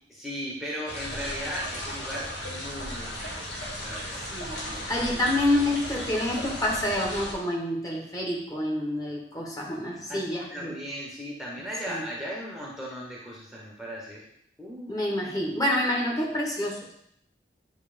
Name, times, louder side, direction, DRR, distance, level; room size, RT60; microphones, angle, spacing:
voice 1, 0.1-3.3 3.7-4.3 4.6-5.3 10.1-14.2 14.6-15.1, equal, ahead, -4 dB, 1.1 m, -37 dB
sound 1, 0.9-7.3, equal, 70° left, 1.8 m, -36 dB
voice 2, 4.3-10.7 11.9-12.1 14.9-16.9, left 1 dB, 20° left, -1 dB, 1.3 m, -28 dB
9.3 x 3.2 x 5.1 m, 0.71 s
head